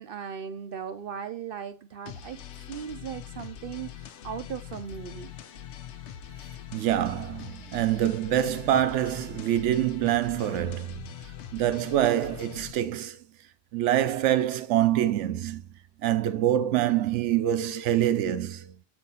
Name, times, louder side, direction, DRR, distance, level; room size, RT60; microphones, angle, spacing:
voice 1, 0.0-5.3, right 8 dB, 60° right, 0.6 m, -38 dB
sound 1, 2.1-12.7, left 10 dB, 80° left, 1.0 m, -43 dB
voice 2, 6.7-11.1 11.5-13.2 13.7-15.6 16.0-18.8, right 12 dB, 80° right, 1.0 m, -25 dB
7.1 x 4.4 x 4.1 m
omnidirectional pair, 1.2 m